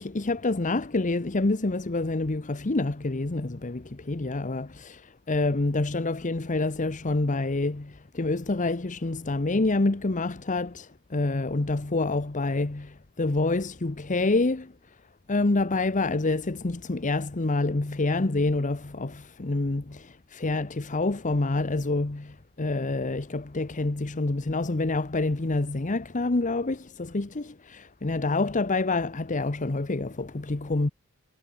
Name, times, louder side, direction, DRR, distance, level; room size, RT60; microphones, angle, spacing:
voice 1, 0.0-14.7 15.3-30.9, left 2 dB, 35° left, 0.9 m, -27 dB
head